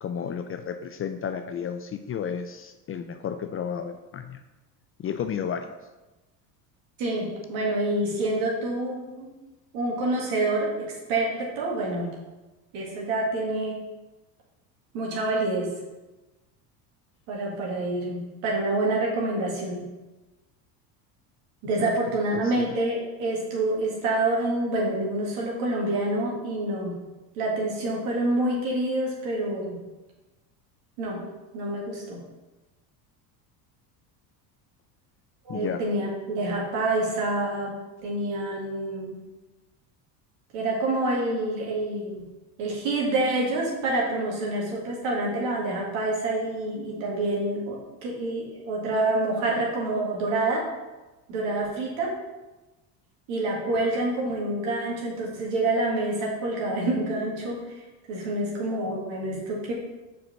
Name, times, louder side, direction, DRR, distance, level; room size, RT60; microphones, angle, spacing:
voice 1, 0.0-4.4 5.0-5.7 21.8-21.9 22.3-22.7 35.5-35.8, left 7 dB, 30° left, 8 dB, 0.4 m, -32 dB
voice 2, 7.0-9.3 9.7-10.7 11.1-12.1 12.7-13.8 14.9-15.7 17.3-19.8 21.6-26.9 27.4-29.8 31.0-31.2 31.5-32.2 35.5-37.7 38.0-39.2 40.5-42.2 42.6-50.7 51.3-52.1 53.3-59.7, right 2 dB, 70° right, -3 dB, 2.0 m, -27 dB
4.9 x 4.7 x 6.2 m, 1.1 s
hypercardioid pair, 80°, 50 cm